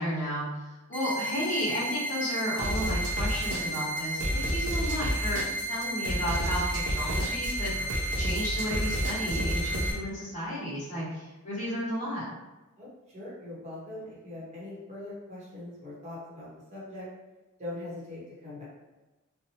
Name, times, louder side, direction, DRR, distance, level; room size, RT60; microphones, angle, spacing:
voice 1, 0.0-5.4 5.7-7.7 8.2-12.2, equal, 35° left, -10 dB, 1.1 m, -33 dB
sound 1, 0.9-9.9, right 1 dB, 10° left, 0.4 m, -34 dB
sound 2, 2.6-10.0, equal, 70° right, 0.6 m, -31 dB
voice 2, 12.8-17.1 17.6-18.6, left 1 dB, 30° right, -8 dB, 0.9 m, -41 dB
2.7 x 2.1 x 2.8 m, 1.1 s
head